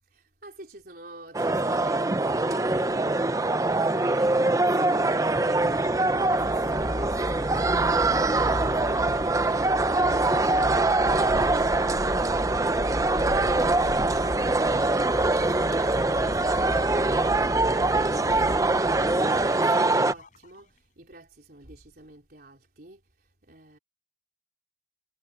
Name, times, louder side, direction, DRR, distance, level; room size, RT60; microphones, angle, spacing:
voice 1, 0.1-3.4 3.7-6.0 6.3-23.8, right 1 dB, 55° right, 3.9 m, -48 dB
sound 1, 1.3-20.1, right 2 dB, 20° right, 0.6 m, -23 dB
sound 2, 4.9-20.6, left 1 dB, 45° left, 4.3 m, -37 dB
head